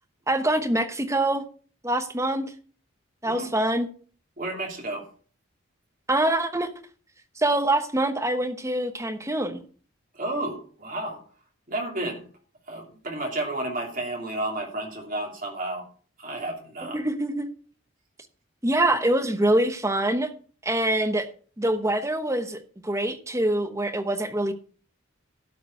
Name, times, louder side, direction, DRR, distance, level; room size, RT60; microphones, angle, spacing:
voice 1, 0.3-1.4 1.8-2.5 3.2-3.9 6.1-6.7 7.4-9.6 16.9-17.5 18.6-20.3 20.6-21.3 21.6-24.5, right 1 dB, 15° right, 7 dB, 1.1 m, -24 dB
voice 2, 4.4-5.1 10.1-11.2 11.7-12.2 12.7-15.8 16.2-17.0, right 2 dB, 40° right, 1 dB, 2.9 m, -31 dB
12.5 x 4.9 x 7.9 m, 0.42 s
head